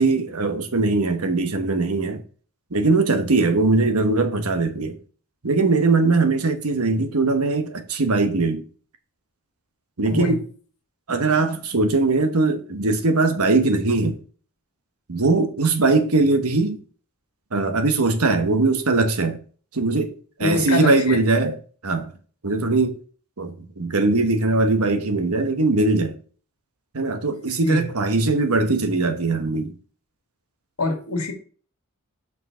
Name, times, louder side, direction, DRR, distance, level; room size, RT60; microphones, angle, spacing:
voice 1, 0.0-2.2 2.7-5.0 5.4-8.6 10.0-10.5 11.1-14.2 15.1-16.8 17.5-19.4 19.7-21.6 21.8-22.1 22.4-23.0 23.4-26.2 26.9-29.7, right 3 dB, 80° right, 1.2 m, -21 dB
voice 2, 10.0-10.4 20.4-21.2 27.6-27.9 30.8-31.3, left 2 dB, 85° left, 1.9 m, -24 dB
6.1 x 5.2 x 5.6 m
head